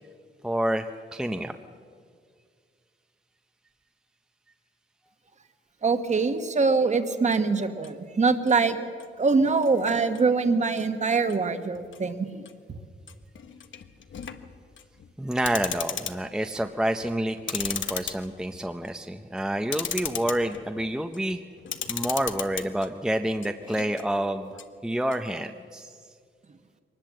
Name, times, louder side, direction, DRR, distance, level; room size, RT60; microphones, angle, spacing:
voice 1, 0.4-1.5 15.2-21.4 21.9-26.0, right 1 dB, 5° right, 6 dB, 0.6 m, -28 dB
voice 2, 5.8-8.8 9.2-12.4, right 4 dB, 35° right, 8 dB, 1.3 m, -23 dB
sound 1, 7.3-7.9 8.5-8.6 9.0-9.2 9.6-10.5 10.8-10.9 11.2-11.4 11.7-12.0 12.4-12.5 13.1-16.7 17.0-22.9 23.3-24.0 24.6-24.7 25.1-25.2, left 8 dB, 80° left, 1.1 m, -36 dB
24.0 x 19.5 x 7.6 m, 2.1 s
wide cardioid pair, 170°, 20 cm